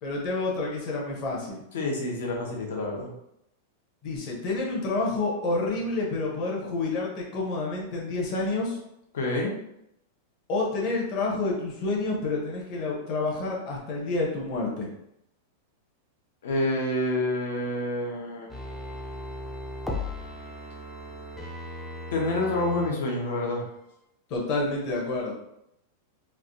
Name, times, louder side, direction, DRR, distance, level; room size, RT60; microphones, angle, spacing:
voice 1, 0.0-1.6 4.0-8.8 10.5-14.9 24.3-25.3, left 3 dB, 30° left, -2 dB, 0.8 m, -29 dB
voice 2, 1.7-3.1 9.1-9.5 16.4-18.5 22.1-23.6, left 1 dB, 75° left, -1 dB, 0.9 m, -28 dB
sound 1, 18.5-22.9 23.3-23.4, left 1 dB, 5° left, 0.3 m, -37 dB
3.3 x 2.4 x 2.6 m, 0.80 s
supercardioid pair, 175°, 0 cm